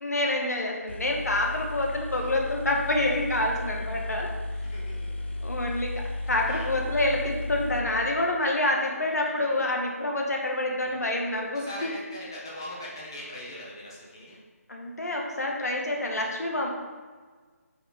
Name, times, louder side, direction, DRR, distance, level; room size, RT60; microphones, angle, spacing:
voice 1, 0.0-4.3 5.4-11.9 14.7-16.7, left 1 dB, 80° left, 0 dB, 1.8 m, -27 dB
sound 1, 0.6-0.7 0.9-8.7, left 2 dB, 45° left, 0.7 m, -34 dB
voice 2, 4.6-5.4 6.0-6.7 9.3-9.8 10.7-11.1 11.3-14.4, left 1 dB, 15° left, -5 dB, 1.0 m, -42 dB
8.4 x 4.9 x 3.9 m, 1.5 s
figure-of-eight pair, 180°, 9 cm